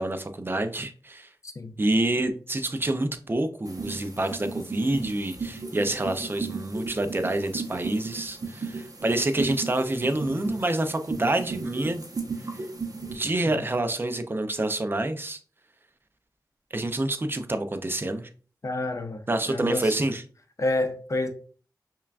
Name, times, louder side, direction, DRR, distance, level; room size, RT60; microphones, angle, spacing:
voice 1, 0.0-1.3 1.8-12.0 13.1-15.4 16.7-18.3 19.3-20.2, right 1 dB, 30° right, 0.5 m, -27 dB
sound 1, 3.7-13.2, right 4 dB, 50° right, 0.8 m, -36 dB
voice 2, 18.6-19.9 20.6-21.3, left 2 dB, 40° left, 0.6 m, -29 dB
5.5 x 2.3 x 2.4 m
wide cardioid pair, 65°, 8 cm